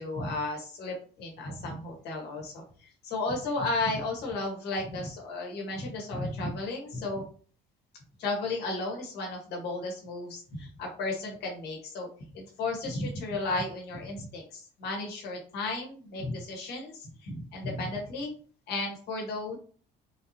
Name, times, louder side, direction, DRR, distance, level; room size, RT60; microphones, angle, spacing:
voice 1, 0.0-7.2 8.2-18.3 18.7-19.6, left 2 dB, 75° left, 0 dB, 1.3 m, -34 dB
3.8 x 2.8 x 2.8 m, 0.43 s
cardioid pair, 110°, 17 cm